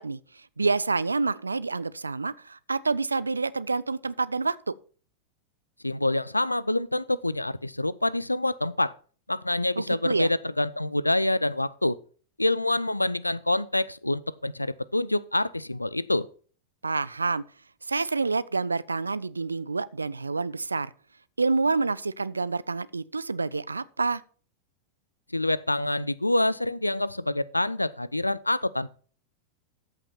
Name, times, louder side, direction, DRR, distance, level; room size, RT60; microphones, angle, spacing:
voice 1, 0.0-4.7 9.8-10.3 16.8-17.4 17.8-20.9 21.4-24.2, right 3 dB, 80° right, 0.4 m, -28 dB
voice 2, 5.8-8.9 9.3-12.0 12.4-16.3 25.3-28.9, left 1 dB, 85° left, 0.4 m, -26 dB
13.5 x 5.7 x 4.3 m
figure-of-eight pair, 90°, 0 cm